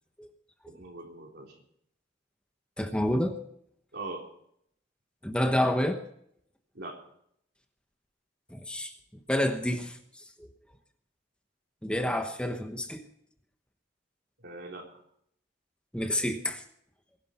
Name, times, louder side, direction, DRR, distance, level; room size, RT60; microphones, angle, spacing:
voice 1, 0.7-1.6 3.9-4.3 6.7-7.0 14.4-14.9, right 2 dB, 60° right, 1 dB, 3.6 m, -41 dB
voice 2, 2.8-3.4 5.2-6.0 8.5-8.9 9.3-10.5 11.8-13.0 15.9-16.6, left 1 dB, 5° left, 6 dB, 1.0 m, -29 dB
21.5 x 11.5 x 4.3 m, 0.69 s
head